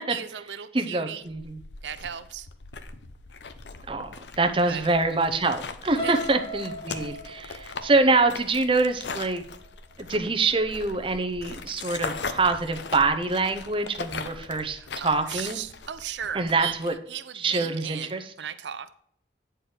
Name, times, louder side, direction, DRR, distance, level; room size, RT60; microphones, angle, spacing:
voice 1, 0.1-1.2 1.8-2.5 4.7-4.8 6.0-6.2 7.0-7.2 14.7-18.9, right 9 dB, 85° right, 13 dB, 0.5 m, -36 dB
voice 2, 0.7-1.6 3.9-9.4 10.1-15.6 16.3-16.9 17.3-18.2, right 3 dB, 30° right, 7 dB, 0.7 m, -25 dB
sound 1, 1.3-16.9, left 4 dB, 80° left, 0.7 m, -40 dB
sound 2, 6.0-9.9 10.4-10.7 11.0-11.1, right 1 dB, 25° left, 1.6 m, -37 dB
9.8 x 4.5 x 4.8 m, 0.65 s
head